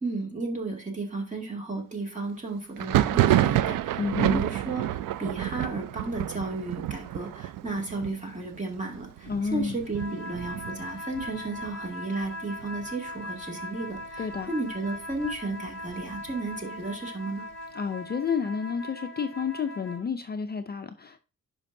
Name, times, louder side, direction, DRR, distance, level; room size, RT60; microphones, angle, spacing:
voice 1, 0.0-17.4, right 3 dB, 25° right, 2.3 m, -33 dB
Thunder, 2.8-12.3 12.5-13.2 13.5-14.5 14.9-16.6, right 13 dB, 85° right, 0.5 m, -29 dB
voice 2, 4.0-4.4 9.3-9.8 14.2-14.5 17.7-21.2, left 6 dB, 30° left, 0.5 m, -30 dB
sound 1, 9.9-20.1, left 1 dB, ahead, 4.2 m, -40 dB
10.5 x 5.2 x 2.6 m
cardioid pair, 120°, 32 cm